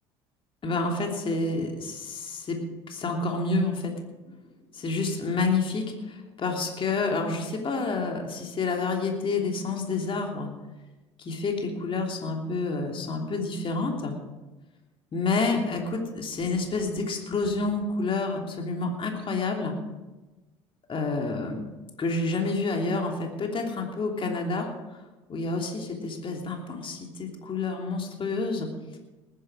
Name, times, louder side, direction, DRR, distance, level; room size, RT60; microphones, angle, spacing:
voice 1, 0.6-2.6 2.9-3.9 4.3-4.4 4.7-10.5 11.2-14.1 15.1-19.7 20.9-21.6 22.0-24.7 25.3-28.7, left 3 dB, 35° left, 2 dB, 3.1 m, -29 dB
19.5 x 10.5 x 4.9 m, 1.1 s
hypercardioid pair, 65°, 15 cm